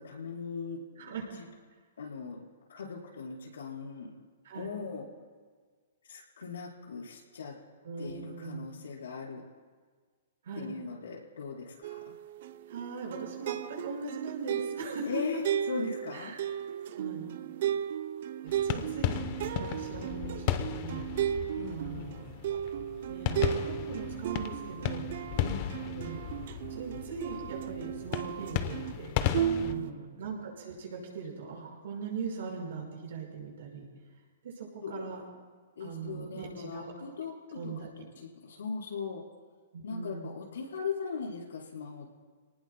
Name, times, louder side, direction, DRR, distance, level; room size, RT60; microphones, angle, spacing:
voice 1, 0.0-1.4 2.0-2.4 2.7-4.2 4.5-5.1 6.0-7.6 8.0-9.4 10.6-12.0 15.1-16.3 21.6-22.3 25.3-25.8 29.5-30.0 34.8-35.1 35.8-38.1 38.4-39.2 39.8-42.1, left 4 dB, 85° left, -2 dB, 4.6 m, -39 dB
voice 2, 7.8-8.7 10.4-10.7 12.7-15.1 15.3-15.4 16.1-16.4 16.9-17.4 18.4-21.0 21.7-22.6 23.1-25.1 25.9-26.2 26.7-33.9 34.4-35.2 35.8-36.9 37.5-37.9 39.7-40.3, right 5 dB, 75° right, -2 dB, 5.2 m, -40 dB
sound 1, 11.8-29.0 29.3-29.9, right 10 dB, 55° right, 0.6 m, -35 dB
sound 2, 18.5-29.7, left 11 dB, 40° left, 0.8 m, -35 dB
29.5 x 19.0 x 2.2 m, 1.5 s
hypercardioid pair, 150°, 0 cm